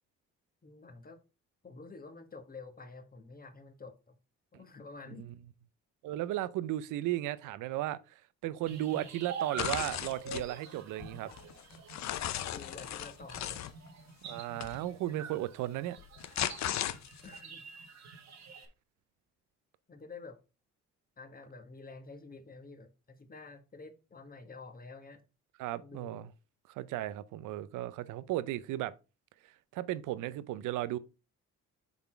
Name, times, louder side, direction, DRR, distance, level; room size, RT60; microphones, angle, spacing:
voice 1, 0.6-1.2 1.6-4.1 4.5-5.3 12.5-13.6 17.2-17.6 19.9-20.4 21.2-25.2 25.8-26.2, left 3 dB, 30° left, 1.5 m, -49 dB
voice 2, 6.0-8.0 8.4-11.3 14.2-16.0 25.6-26.3 26.7-28.9 29.4-31.0, right 14 dB, 85° right, 0.6 m, -35 dB
sound 1, 8.7-18.7, right 5 dB, 65° right, 1.6 m, -46 dB
sound 2, 9.6-10.5 11.0-13.7 14.6-14.8 16.0-17.4, left 11 dB, 65° left, 0.7 m, -36 dB
7.1 x 4.1 x 4.4 m
cardioid pair, 90°, 30 cm